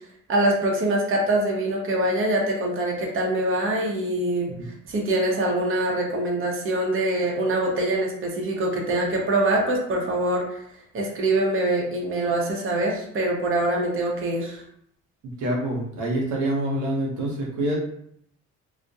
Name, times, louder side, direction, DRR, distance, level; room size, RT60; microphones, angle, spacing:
voice 1, 0.3-4.5 4.9-10.6 10.9-14.6, right 1 dB, 45° right, -1 dB, 0.7 m, -24 dB
voice 2, 15.4-17.8, right 1 dB, 90° right, -3 dB, 0.7 m, -26 dB
2.3 x 2.1 x 2.6 m, 0.69 s
cardioid pair, 90°, 30 cm